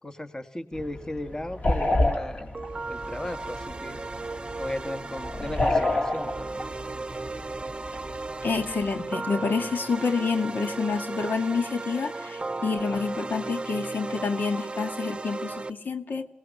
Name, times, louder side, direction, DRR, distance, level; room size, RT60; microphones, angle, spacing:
voice 1, 0.0-2.5 2.9-4.0 4.6-6.6, left 1 dB, 20° left, 9 dB, 1.6 m, -36 dB
sound 1, 0.7-9.0, left 2 dB, 45° left, 3.7 m, -30 dB
sound 2, 2.5-15.7, right 3 dB, 30° right, 0.9 m, -35 dB
voice 2, 8.4-16.3, left 4 dB, 70° left, 7 dB, 1.9 m, -28 dB
26.5 x 18.5 x 7.3 m, 0.62 s
wide cardioid pair, 135°, 3 cm